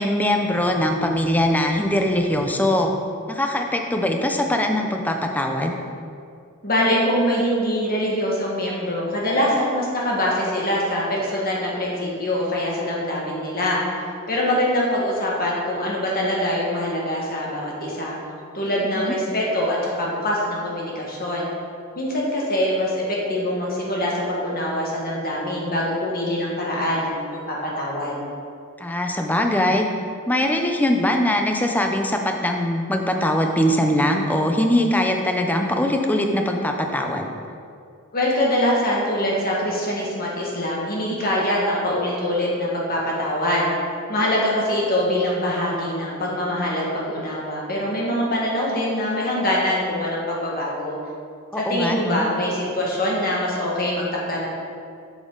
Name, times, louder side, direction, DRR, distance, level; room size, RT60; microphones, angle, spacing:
voice 1, 0.0-2.9 3.3-5.7 18.9-19.1 28.8-29.9 30.3-37.3 51.5-52.3, left 1 dB, 10° left, 3 dB, 0.6 m, -21 dB
voice 2, 6.6-13.8 14.3-18.2 18.5-21.5 22.0-27.1 27.5-28.3 38.1-43.7 44.1-51.0 51.5-54.5, left 1 dB, 45° left, -4 dB, 1.7 m, -24 dB
7.4 x 7.2 x 3.8 m, 2.4 s
head